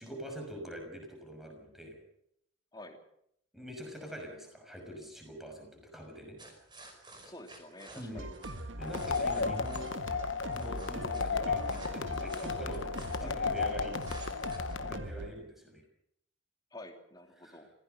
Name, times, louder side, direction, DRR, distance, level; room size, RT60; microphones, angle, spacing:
voice 1, 0.0-2.0 3.5-6.4 7.9-8.3 8.8-9.9 10.5-12.8 13.2-13.9 14.8-15.8 17.4-17.6, equal, ahead, 2 dB, 6.1 m, -44 dB
sound 1, 6.4-9.9 10.4-13.6 14.0-14.8, right 2 dB, 25° right, 5.2 m, -52 dB
voice 2, 7.2-8.3 13.2-13.4 16.7-17.7, left 1 dB, 20° left, 3 dB, 3.1 m, -49 dB
sound 2, 8.2-15.3, right 1 dB, 70° right, 1.7 m, -41 dB
sound 3, 8.8-15.0, left 5 dB, 70° left, 1.0 m, -34 dB
25.5 x 16.5 x 6.8 m, 0.73 s
head